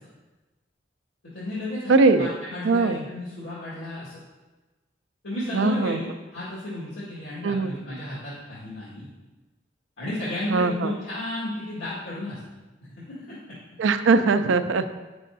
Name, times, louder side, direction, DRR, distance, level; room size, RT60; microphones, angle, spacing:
voice 1, 1.2-4.2 5.2-9.1 10.0-12.4 13.0-13.6, left 1 dB, 85° left, -9 dB, 1.8 m, -33 dB
voice 2, 1.9-2.3 2.6-3.0 5.5-6.0 7.4-7.7 10.5-10.9 13.8-15.0, right 4 dB, 80° right, 10 dB, 0.4 m, -21 dB
8.4 x 6.2 x 2.6 m, 1.2 s
head